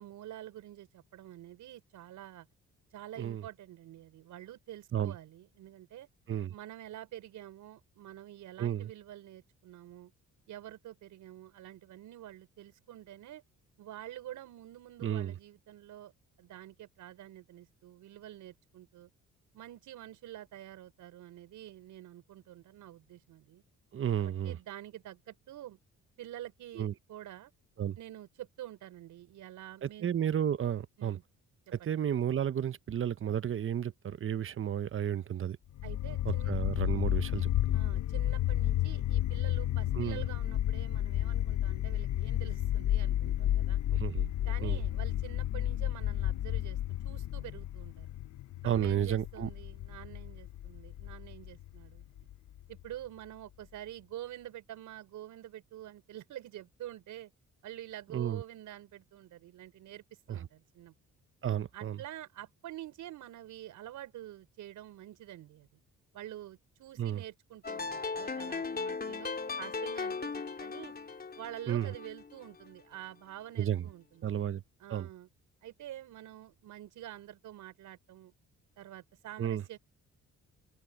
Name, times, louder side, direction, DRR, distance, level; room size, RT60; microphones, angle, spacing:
voice 1, 0.0-2.5 2.9-6.1 6.5-10.1 10.5-13.4 13.8-16.1 16.4-19.1 19.5-23.6 24.2-25.8 26.2-27.5 28.0-30.1 31.0-31.2 31.8-31.9 35.8-36.6 37.7-43.8 44.4-46.8 47.0-48.1 48.6-52.3 52.7-57.3 57.6-60.9 61.7-65.8 66.1-70.9 71.4-74.3 74.8-75.3 75.6-78.3 78.8-79.8, right 13 dB, 80° right, 5.5 m, -47 dB
voice 2, 8.6-8.9 15.0-15.3 23.9-24.6 26.8-26.9 27.8-28.0 29.8-31.2 31.7-35.6 36.2-37.5 39.9-40.2 43.9-44.3 44.6-44.8 48.6-49.5 58.1-58.4 60.3-60.5 61.4-62.0 67.0-67.2 71.7-71.9 73.6-73.8 74.2-74.6 74.9-75.1 79.4-79.6, right 9 dB, 45° right, 0.9 m, -32 dB
sound 1, 35.8-52.8, left 13 dB, 65° left, 0.9 m, -32 dB
sound 2, 67.6-72.7, left 4 dB, 30° left, 3.9 m, -38 dB
open air
cardioid pair, 90°, 30 cm